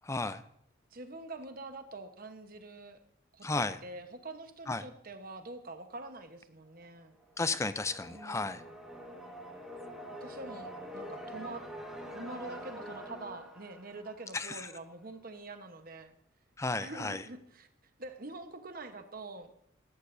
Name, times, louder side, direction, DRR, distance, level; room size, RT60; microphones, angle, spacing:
voice 1, 0.0-0.4 3.4-3.8 4.7-4.8 7.4-8.6 14.3-14.7 16.6-17.2, left 3 dB, 15° left, 13 dB, 0.4 m, -33 dB
voice 2, 0.9-3.0 3.3-7.2 8.1-8.7 10.2-11.6 12.1-16.1 16.8-17.7 18.0-19.5, right 2 dB, 45° right, 7 dB, 1.1 m, -45 dB
sound 1, 7.2-15.0, equal, ahead, 1.6 m, -46 dB
17.0 x 13.0 x 2.7 m, 0.72 s
head